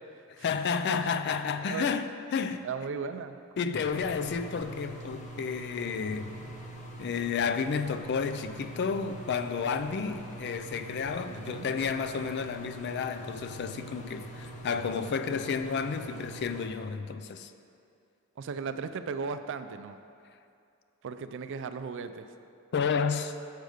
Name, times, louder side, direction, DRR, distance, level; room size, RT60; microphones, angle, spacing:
voice 1, 0.4-2.7 3.6-6.3 7.0-17.5 22.7-23.3, left 6 dB, 50° left, 0.3 m, -31 dB
voice 2, 2.6-3.4 11.2-11.7 18.4-20.0 21.0-22.3, right 5 dB, 60° right, 0.4 m, -36 dB
sound 1, 3.7-16.7, right 1 dB, 35° left, 0.8 m, -43 dB
6.6 x 4.9 x 6.4 m
head